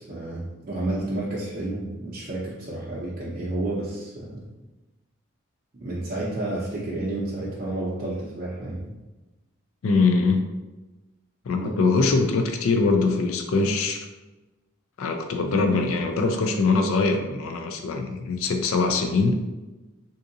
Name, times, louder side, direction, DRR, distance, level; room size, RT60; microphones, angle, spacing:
voice 1, 0.0-4.4 5.8-8.9 11.5-11.8, right 2 dB, 40° right, -7 dB, 0.5 m, -31 dB
voice 2, 9.8-10.4 11.5-14.1 15.0-19.4, left 3 dB, 80° left, 5 dB, 0.4 m, -22 dB
3.6 x 2.6 x 2.6 m, 1.1 s
head